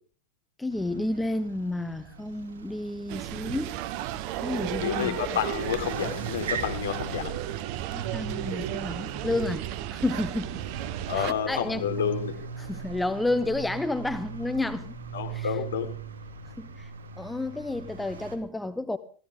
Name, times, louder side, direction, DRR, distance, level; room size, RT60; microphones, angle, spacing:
voice 1, 0.6-3.8 4.4-5.2 7.9-10.6 11.2-11.8 12.6-14.9 15.3-15.5 16.6-16.9 17.2-19.0, left 2 dB, 5° left, 12 dB, 0.8 m, -31 dB
sound 1, 0.7-18.4, right 7 dB, 65° right, 2.5 m, -40 dB
sound 2, 3.1-11.3, right 13 dB, 45° right, 0.9 m, -34 dB
voice 2, 4.8-7.4 11.1-12.4 15.1-15.9, left 9 dB, 60° left, 4 dB, 4.0 m, -30 dB
24.0 x 16.0 x 3.6 m, 0.42 s
figure-of-eight pair, 90°, 0 cm